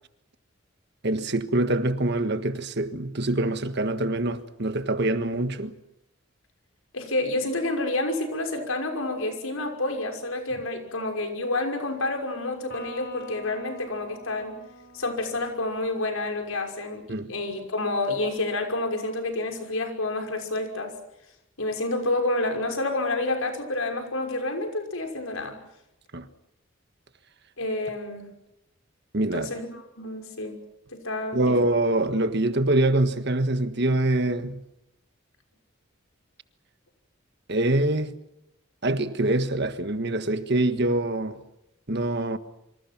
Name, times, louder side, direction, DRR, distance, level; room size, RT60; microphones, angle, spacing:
voice 1, 1.0-5.7 17.1-17.3 26.1-26.3 29.1-29.5 31.3-34.6 37.5-38.1 38.8-41.4 41.9-42.4, right 2 dB, 50° right, 1.5 m, -24 dB
voice 2, 6.9-14.6 14.9-21.0 21.6-25.6 27.6-28.3 29.3-30.6 30.9-31.6, left 2 dB, 85° left, 5.8 m, -29 dB
Electric guitar, 12.7-16.2, left 2 dB, 50° left, 4.7 m, -45 dB
27.0 x 25.5 x 6.0 m
head